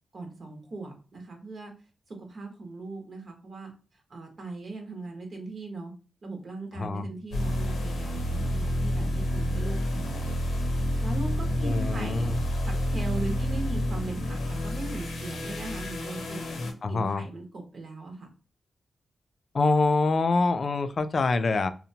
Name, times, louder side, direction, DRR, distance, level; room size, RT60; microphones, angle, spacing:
voice 1, 0.1-1.7 2.1-3.7 4.1-5.9 6.2-10.2 11.0-12.3 12.6-16.5 16.9-18.3, right 2 dB, 55° right, 2 dB, 0.8 m, -39 dB
sound 1, 7.3-16.7, equal, 90° left, 0.7 m, -29 dB
voice 2, 11.6-12.4 16.8-17.2 19.5-21.7, left 3 dB, 50° left, 11 dB, 0.3 m, -25 dB
2.7 x 2.1 x 2.7 m, 0.36 s
cardioid pair, 90°, 0 cm